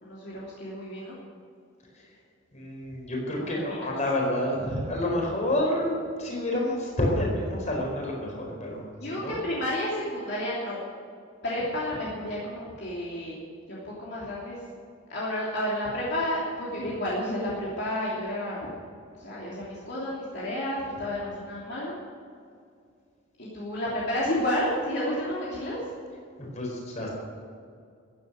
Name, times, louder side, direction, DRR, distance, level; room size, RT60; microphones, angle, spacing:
voice 1, 0.0-1.2 3.7-3.9 8.9-10.8 11.4-13.4 13.7-14.6 15.1-18.7 19.2-21.9 23.4-25.9, left 1 dB, 50° left, -7 dB, 3.1 m, -31 dB
voice 2, 2.5-5.9 6.2-8.8 9.1-9.4 26.4-27.1, left 1 dB, 35° left, -1 dB, 4.6 m, -29 dB
14.5 x 10.0 x 7.8 m, 2.3 s
head